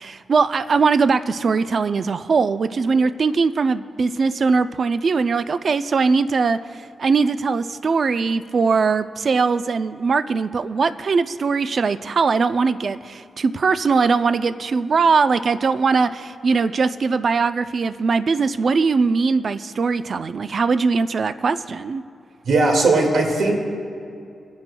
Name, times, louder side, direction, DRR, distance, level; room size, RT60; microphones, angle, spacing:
voice 1, 0.0-22.0, right 4 dB, 55° right, 12 dB, 0.4 m, -20 dB
voice 2, 22.5-23.6, right 3 dB, 80° right, 1 dB, 2.0 m, -18 dB
28.0 x 10.5 x 2.3 m, 2.5 s
cardioid pair, 95°, 0 cm